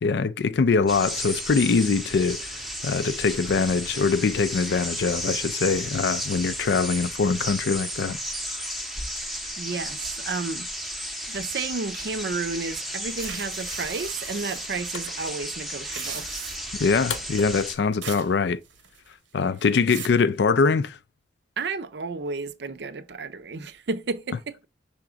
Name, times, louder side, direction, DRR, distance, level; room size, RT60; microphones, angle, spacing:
voice 1, 0.0-8.2 16.8-18.6 19.3-21.0, left 5 dB, 65° left, 0.4 m, -23 dB
sound 1, 0.9-17.8, equal, ahead, 0.7 m, -34 dB
voice 2, 9.6-10.7 11.3-16.3 21.6-24.7, right 4 dB, 65° right, 0.5 m, -32 dB
sound 2, 13.2-14.8 15.8-16.8 18.0-18.3 18.7-19.1 19.6-20.2, right 9 dB, 80° right, 0.9 m, -39 dB
sound 3, 14.3-19.3, left 6 dB, 85° left, 0.9 m, -42 dB
5.8 x 3.5 x 4.9 m
head